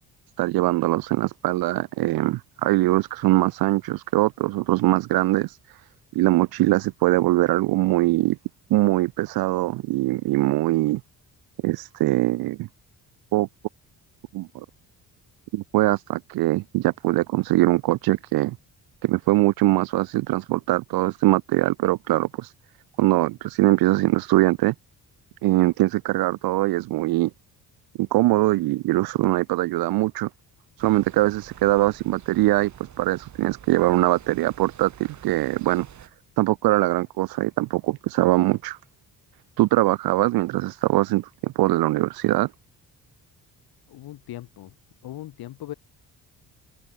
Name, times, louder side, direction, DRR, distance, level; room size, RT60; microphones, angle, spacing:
voice 1, 0.4-5.5 6.1-8.4 8.7-11.0 11.6-12.7 13.3-13.5 14.3-14.7 15.5-18.6 19.0-22.5 23.0-24.7 25.4-27.3 28.0-30.3 30.8-32.7 33.0-35.9 36.4-38.8 39.6-42.5, right 18 dB, 70° right, 0.5 m, -22 dB
sound 1, 30.8-36.1, right 9 dB, 50° right, 2.6 m, -47 dB
voice 2, 43.9-44.8 45.0-45.7, left 14 dB, 75° left, 1.6 m, -39 dB
cardioid pair, 140°, 37 cm